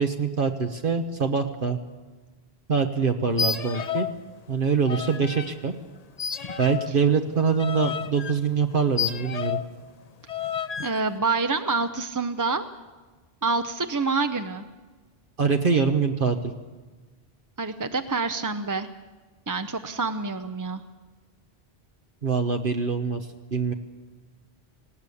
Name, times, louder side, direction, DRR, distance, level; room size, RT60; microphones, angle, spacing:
voice 1, 0.0-1.8 2.7-4.1 4.5-5.7 6.6-9.6 15.4-16.5 22.2-23.7, right 5 dB, 55° right, 6 dB, 1.1 m, -24 dB
sound 1, 3.3-4.2 4.5-5.5 6.2-9.8 10.3-11.0, left 8 dB, 40° left, 0.8 m, -31 dB
voice 2, 10.8-12.6 13.4-14.6 17.6-18.9 19.5-20.8, right 4 dB, 25° right, 8 dB, 0.5 m, -27 dB
19.0 x 17.5 x 8.4 m, 1.3 s
omnidirectional pair, 1.1 m